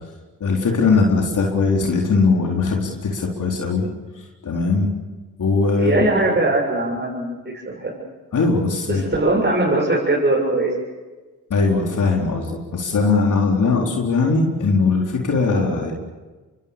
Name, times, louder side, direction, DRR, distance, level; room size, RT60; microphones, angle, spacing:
voice 1, 0.4-3.8 4.4-4.9 5.4-6.1 8.3-9.2 11.5-15.9, left 4 dB, 55° left, -1 dB, 4.2 m, -20 dB
voice 2, 5.8-7.4 7.7-8.0 8.8-10.7, right 2 dB, 30° right, -3 dB, 7.2 m, -20 dB
27.0 x 23.5 x 7.0 m, 1.3 s
supercardioid pair, 60°, 36 cm